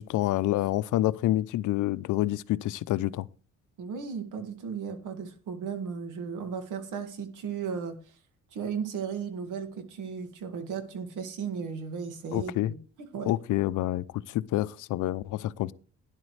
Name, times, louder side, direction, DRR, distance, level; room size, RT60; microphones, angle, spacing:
voice 1, 0.0-3.3 12.3-12.7 13.3-15.7, left 15 dB, 80° left, 0.6 m, -28 dB
voice 2, 3.8-8.2 8.5-13.3, right 6 dB, 85° right, 2.1 m, -35 dB
12.5 x 10.5 x 3.3 m
cardioid pair, 90°, 30 cm